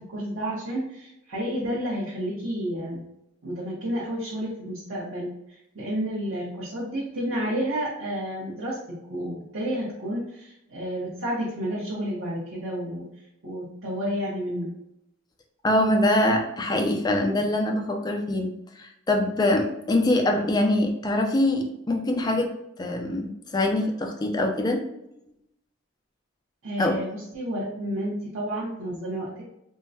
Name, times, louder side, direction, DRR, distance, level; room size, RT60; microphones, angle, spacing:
voice 1, 0.0-3.0 3.4-5.3 5.7-13.1 13.4-14.7 26.6-29.3, equal, 75° right, -8 dB, 0.9 m, -30 dB
voice 2, 15.6-18.5 18.8-22.5 22.8-24.8 26.8-27.0, left 1 dB, 20° left, 2 dB, 0.4 m, -24 dB
3.6 x 2.1 x 2.7 m, 0.82 s
head